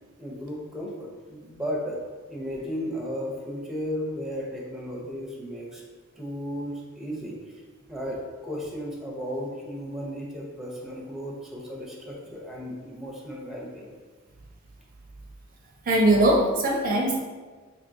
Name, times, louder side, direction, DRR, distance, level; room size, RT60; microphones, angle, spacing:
voice 1, 0.2-2.0 2.3-5.8 6.2-7.3 7.9-13.9, equal, ahead, -2 dB, 0.6 m, -34 dB
voice 2, 15.8-17.2, right 1 dB, 40° right, 0 dB, 0.4 m, -20 dB
4.3 x 3.0 x 2.6 m, 1.4 s
head